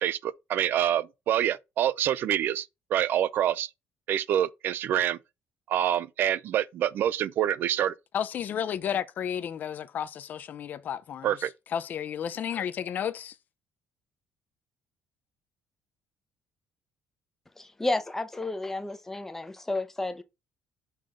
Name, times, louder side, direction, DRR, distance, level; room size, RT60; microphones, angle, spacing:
voice 1, 0.0-3.7 4.1-5.2 5.7-7.9 11.2-11.5, right 11 dB, 55° right, 0.4 m, -26 dB
voice 2, 8.1-11.4 11.7-13.4, left 9 dB, 45° left, 0.6 m, -32 dB
voice 3, 17.6-20.2, left 2 dB, 10° left, 0.7 m, -31 dB
5.7 x 3.6 x 4.9 m
cardioid pair, 150°, 4 cm